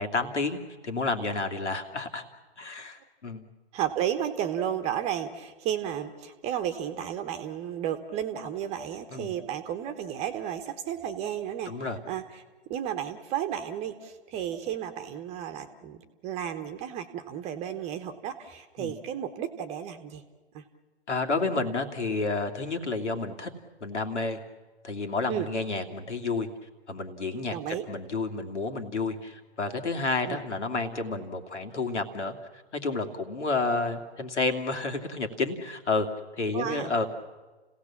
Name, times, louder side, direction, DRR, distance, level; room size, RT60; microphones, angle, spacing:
voice 1, 0.0-2.2 2.6-3.4 9.1-9.3 11.7-12.0 18.8-18.9 21.1-23.5 23.8-24.4 24.8-26.5 26.9-36.1 36.3-37.1, left 3 dB, 80° left, 4 dB, 2.8 m, -30 dB
voice 2, 3.7-12.4 12.7-20.2 20.5-20.6 25.3-25.5 27.5-27.8 30.2-30.4 36.5-36.9, right 10 dB, 20° right, 9 dB, 1.2 m, -33 dB
30.0 x 17.0 x 7.3 m, 1.3 s
hypercardioid pair, 135°, 35 cm